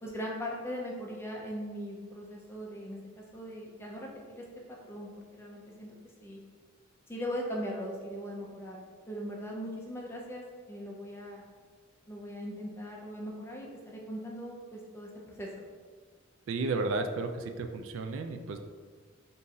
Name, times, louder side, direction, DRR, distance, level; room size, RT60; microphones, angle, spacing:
voice 1, 0.0-6.0 6.2-6.4 7.1-8.8 9.1-11.4 12.1-15.1 15.4-15.6, equal, 10° left, -2 dB, 0.6 m, -40 dB
voice 2, 16.5-18.6, right 3 dB, 70° right, 6 dB, 0.3 m, -33 dB
3.7 x 2.6 x 4.1 m, 1.5 s
head